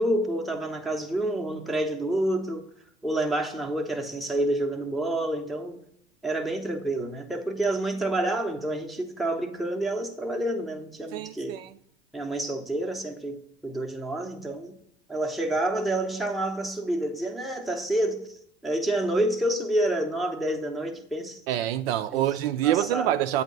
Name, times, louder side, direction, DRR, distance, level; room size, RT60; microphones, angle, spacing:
voice 1, 0.0-2.7 3.0-5.8 6.2-11.6 12.1-14.8 15.1-21.4 22.1-22.2 22.6-23.2, right 1 dB, ahead, 0.7 m, -28 dB
voice 2, 11.1-11.7 21.5-23.4, right 12 dB, 65° right, 0.4 m, -26 dB
8.1 x 2.8 x 5.2 m
hypercardioid pair, 95°, 33 cm